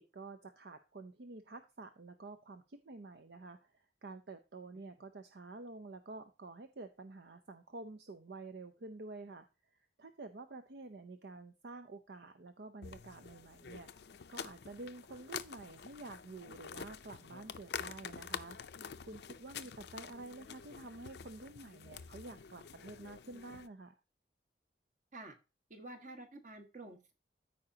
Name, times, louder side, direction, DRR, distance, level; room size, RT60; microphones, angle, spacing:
voice 1, 0.0-24.0, right 3 dB, 65° right, 9 dB, 0.6 m, -50 dB
sound 1, 12.8-23.7, left 7 dB, 65° left, 0.5 m, -47 dB
voice 2, 25.7-27.1, right 2 dB, 45° right, 5 dB, 1.5 m, -50 dB
13.5 x 4.9 x 2.8 m, 0.28 s
head